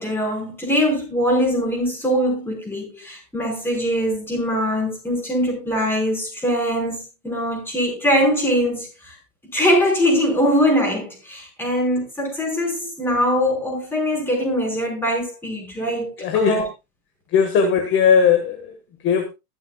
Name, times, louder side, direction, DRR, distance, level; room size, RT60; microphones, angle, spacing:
voice 1, 0.0-9.1 9.5-16.6, equal, 5° left, 5.0 m, -22 dB
voice 2, 16.2-16.6 17.3-18.7 19.0-19.3, left 7 dB, 25° left, 1.6 m, -18 dB
21.0 x 7.2 x 2.3 m
hypercardioid pair, 135°, 43 cm